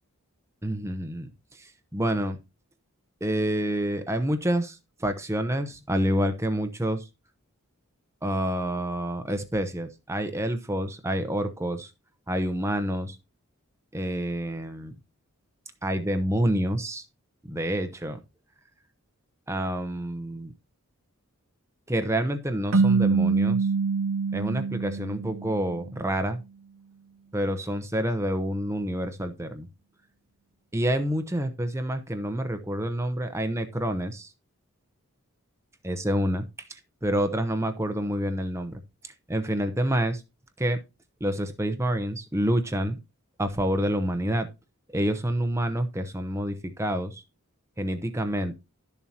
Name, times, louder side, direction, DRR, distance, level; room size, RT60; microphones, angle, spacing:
voice 1, 0.6-2.4 3.2-7.1 8.2-11.9 12.3-13.2 13.9-14.9 15.8-17.0 17.4-18.2 19.5-20.5 21.9-23.6 24.3-26.4 27.3-29.7 30.7-34.3 35.8-36.4 36.7-40.2 40.6-40.8 41.2-43.0 43.4-44.5 44.9-47.2 47.8-48.5, right 1 dB, 10° right, 8 dB, 0.8 m, -28 dB
sound 1, 22.7-25.9, right 4 dB, 65° right, 0.7 m, -25 dB
12.0 x 7.1 x 2.9 m, 0.25 s
head